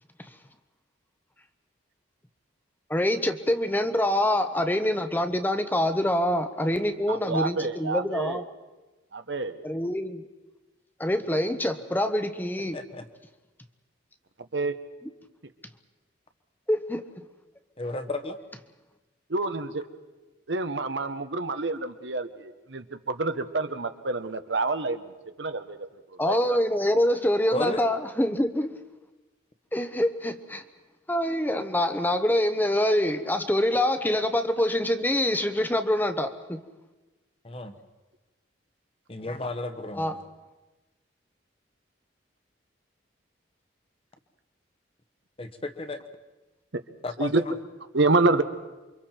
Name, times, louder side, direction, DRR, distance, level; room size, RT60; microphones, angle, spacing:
voice 1, 2.9-8.5 9.6-10.2 11.0-12.8 16.7-17.0 26.2-28.8 29.7-30.6 31.1-36.6 39.9-40.2, left 1 dB, 10° left, 9 dB, 0.9 m, -25 dB
voice 2, 7.1-8.4 9.1-9.6 14.5-14.7 19.3-19.8 20.5-26.6 46.7-46.8 47.2-47.4 47.9-48.4, right 3 dB, 70° right, 9 dB, 1.1 m, -28 dB
voice 3, 12.7-13.1 17.8-18.4 27.5-27.8 37.4-37.7 39.1-40.2 45.4-46.0 47.0-47.3, left 2 dB, 30° left, 8 dB, 1.2 m, -33 dB
28.5 x 24.5 x 4.5 m, 1.2 s
head